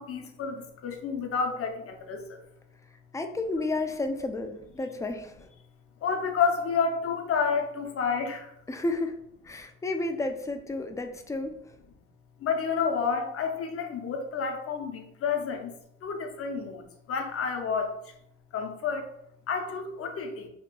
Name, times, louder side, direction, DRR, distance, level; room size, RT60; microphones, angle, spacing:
voice 1, 0.0-2.2 6.0-8.5 12.4-15.7 16.0-16.8 17.1-17.9 18.5-19.1 19.5-20.5, left 5 dB, 50° left, 3 dB, 0.7 m, -29 dB
voice 2, 3.1-5.5 8.7-9.2 9.4-11.8, left 2 dB, 10° left, 5 dB, 0.4 m, -32 dB
2.9 x 2.4 x 3.7 m, 0.77 s
cardioid pair, 90°, 30 cm